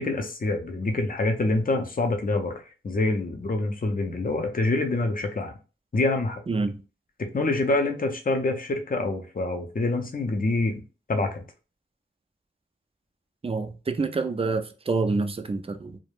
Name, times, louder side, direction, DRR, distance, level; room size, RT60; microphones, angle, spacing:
voice 1, 0.0-5.5 5.9-6.4 7.2-10.8 11.1-11.4, left 2 dB, 45° left, 0.5 m, -26 dB
voice 2, 6.5-6.8 13.4-16.0, right 3 dB, 30° right, 0.3 m, -27 dB
2.3 x 2.1 x 3.2 m
wide cardioid pair, 50°, 21 cm